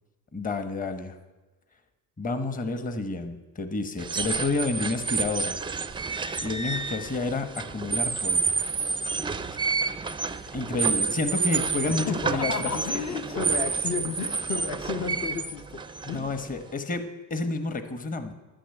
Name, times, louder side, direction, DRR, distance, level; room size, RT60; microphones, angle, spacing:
voice 1, 0.3-1.2 2.2-5.6 6.4-8.6 10.5-13.0 16.1-18.3, left 3 dB, 25° left, 9 dB, 1.1 m, -30 dB
sound 1, 4.0-16.7, right 5 dB, 15° right, 0.4 m, -29 dB
voice 2, 11.8-16.3, left 5 dB, 50° left, 6 dB, 1.0 m, -32 dB
12.0 x 10.0 x 8.2 m, 1.2 s
cardioid pair, 130°, 35 cm